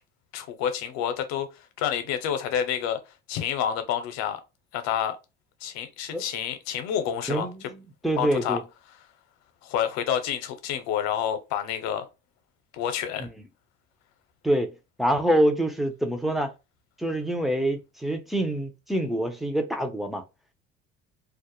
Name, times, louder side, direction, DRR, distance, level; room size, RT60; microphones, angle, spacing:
voice 1, 0.3-1.5 1.8-3.0 3.3-4.4 4.7-5.2 5.6-7.5 8.2-8.6 9.6-12.0 12.7-13.3, left 9 dB, 65° left, 0.7 m, -28 dB
voice 2, 7.3-8.6 13.2-13.3 14.4-14.7 15.0-16.5 17.0-20.2, right 1 dB, ahead, 0.5 m, -26 dB
2.2 x 2.0 x 2.9 m
hypercardioid pair, 75°, 30 cm